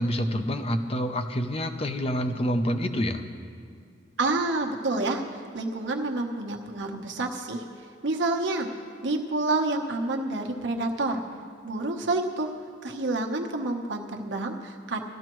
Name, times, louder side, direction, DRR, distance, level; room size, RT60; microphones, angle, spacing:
voice 1, 0.0-3.2, equal, 35° left, 7 dB, 0.6 m, -27 dB
voice 2, 4.2-5.2 5.5-7.6 8.0-8.7 9.0-11.2 11.6-12.5 12.8-15.0, right 2 dB, 80° right, 2 dB, 1.1 m, -28 dB
17.0 x 13.5 x 3.1 m, 2.3 s
head